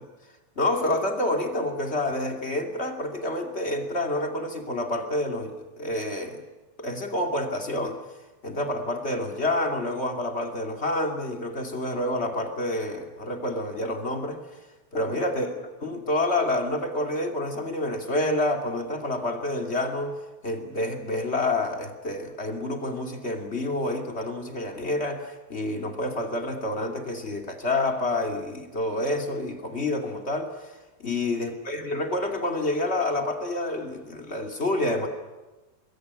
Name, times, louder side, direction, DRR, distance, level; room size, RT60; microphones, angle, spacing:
voice 1, 0.6-6.4 6.8-8.0 8.4-14.4 14.9-35.1, left 1 dB, 20° left, 3 dB, 2.1 m, -28 dB
26.5 x 21.5 x 9.6 m, 1.1 s
omnidirectional pair, 4.5 m